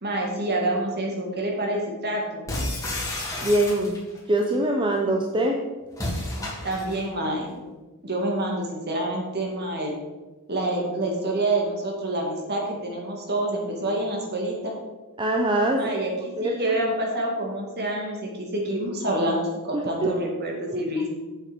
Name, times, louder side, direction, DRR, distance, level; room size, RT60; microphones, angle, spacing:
voice 1, 0.0-2.4 6.6-7.5 8.0-9.9 10.5-14.7 15.7-19.4 19.6-21.1, right 1 dB, 50° right, 0 dB, 2.2 m, -27 dB
sound 1, 2.5-4.2 5.9-7.1, left 1 dB, 15° left, 2.5 m, -31 dB
voice 2, 3.4-4.0 4.3-5.6 15.2-15.9 16.4-16.8 19.7-20.1 20.7-20.8, right 1 dB, 20° right, 1 dB, 0.7 m, -23 dB
7.8 x 7.4 x 5.2 m, 1.2 s
head